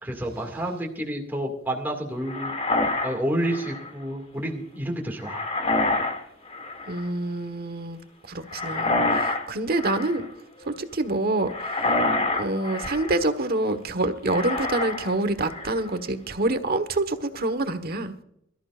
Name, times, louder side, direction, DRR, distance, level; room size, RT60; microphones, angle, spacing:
voice 1, 0.0-2.5 3.0-5.5, right 1 dB, 10° right, -1 dB, 2.1 m, -29 dB
sound 1, 2.3-3.9 5.2-6.2 6.5-7.0 8.5-9.5 9.7-10.3 11.5-13.2 14.3-15.1 15.4-15.9, left 2 dB, 35° left, 2.3 m, -27 dB
voice 2, 6.9-8.0 8.3-10.3 10.6-12.0 12.3-18.1, right 2 dB, 55° right, 9 dB, 1.3 m, -27 dB
22.5 x 13.5 x 2.5 m, 0.72 s
head